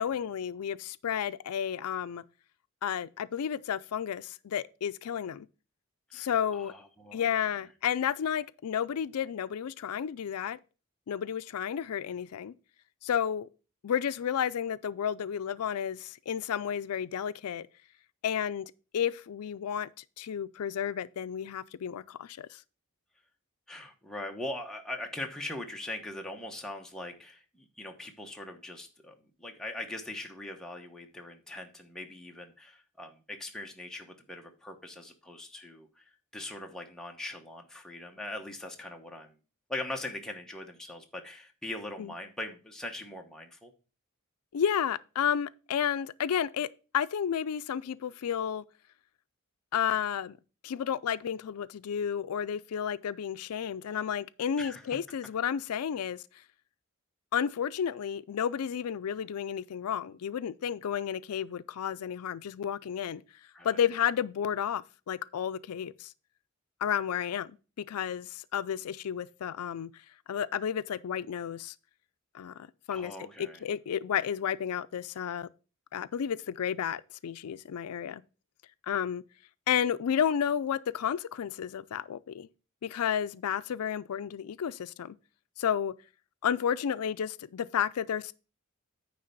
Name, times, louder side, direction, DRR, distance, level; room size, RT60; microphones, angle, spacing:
voice 1, 0.0-2.2 2.8-5.5 6.1-6.7 7.1-10.6 11.1-12.5 13.0-13.5 13.8-17.7 18.2-19.9 20.2-22.6 42.0-42.1 44.5-46.7 46.9-48.6 49.7-50.4 50.6-56.2 57.3-63.2 63.6-66.1 66.8-70.0 70.3-71.7 72.3-73.1 73.4-75.5 75.9-78.2 78.8-79.2 79.7-82.5 82.8-85.2 85.6-85.9 86.4-88.3, left 8 dB, 85° left, 0.4 m, -32 dB
voice 2, 6.1-7.5 23.7-39.4 39.7-43.7 54.6-54.8 63.5-63.8 72.9-73.6, left 1 dB, 5° left, 1.0 m, -41 dB
9.6 x 3.4 x 6.7 m
head